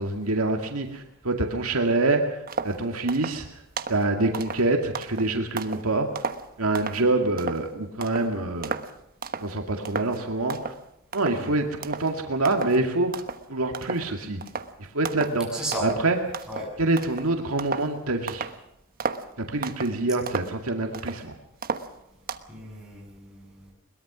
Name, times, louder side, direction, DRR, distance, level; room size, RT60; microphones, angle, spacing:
voice 1, 0.0-2.4 2.6-3.5 3.9-6.1 6.6-8.7 9.4-10.7 11.1-13.2 13.5-14.4 14.8-16.2 16.8-18.5 19.5-21.3, right 2 dB, 75° right, 3 dB, 2.2 m, -26 dB
sound 1, 2.5-2.8 3.1-3.4 3.8-4.0 4.3-5.9 6.2-7.0 7.4-7.7 8.0-8.3 8.6-8.9 9.2-9.5 9.9-10.2 10.5-10.8 11.1-11.5 11.8-12.1 12.5-12.8 13.1-13.5 13.7-14.1 14.4-14.7 15.1-15.4 15.7-16.1 16.3-17.9 18.3-18.6 19.0-19.3 19.6-20.0 20.3-21.2 21.6-22.4, right 5 dB, 45° right, 1.2 m, -33 dB
voice 2, 15.5-15.9 16.5-16.7 22.5-23.7, right 1 dB, 5° right, -4 dB, 7.5 m, -34 dB
22.0 x 21.5 x 6.2 m, 0.81 s
head